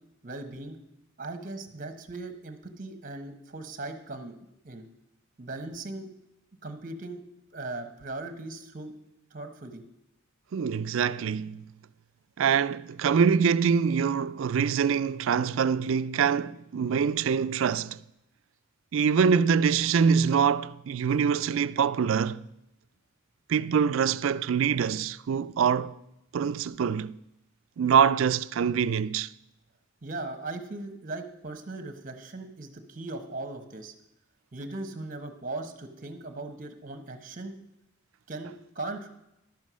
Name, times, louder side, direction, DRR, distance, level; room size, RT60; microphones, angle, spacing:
voice 1, 0.2-0.8 1.2-4.4 4.6-4.9 5.4-6.1 6.6-7.2 7.5-8.9 9.3-9.8 30.0-33.9 34.5-37.5 38.3-39.1, right 2 dB, 40° right, 1.1 m, -38 dB
voice 2, 10.5-11.6 12.4-18.0 18.9-22.4 23.5-26.0 26.3-27.1 27.8-29.3, right 6 dB, 70° right, 0.4 m, -24 dB
12.0 x 7.4 x 6.2 m
head